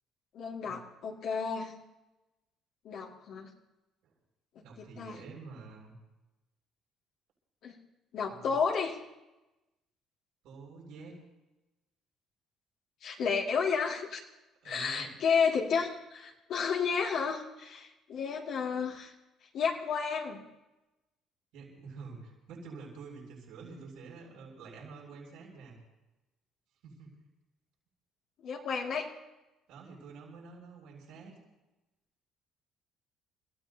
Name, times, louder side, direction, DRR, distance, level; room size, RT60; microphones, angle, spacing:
voice 1, 0.3-1.7 2.8-3.5 5.0-5.2 7.6-7.8 8.1-9.0 13.0-14.2 14.6-19.1 19.5-20.4 28.4-29.1, left 6 dB, 65° left, -2 dB, 2.2 m, -31 dB
voice 2, 4.6-5.9 8.2-8.5 10.4-11.2 14.6-15.1 21.5-25.8 26.8-27.3 29.7-31.3, right 4 dB, 80° right, -4 dB, 7.6 m, -48 dB
29.5 x 15.5 x 2.9 m, 1.0 s
cardioid pair, 105°, 0 cm